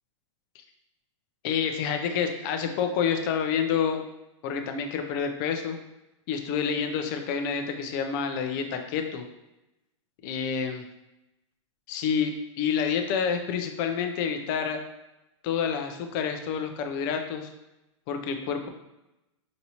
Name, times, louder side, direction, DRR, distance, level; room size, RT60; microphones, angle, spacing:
voice 1, 1.4-4.0 4.4-5.8 6.3-9.2 10.2-10.8 11.9-14.8 15.4-17.5 18.1-18.7, left 7 dB, 40° left, 6 dB, 0.6 m, -28 dB
5.1 x 2.8 x 2.9 m, 0.93 s
hypercardioid pair, 140°, 16 cm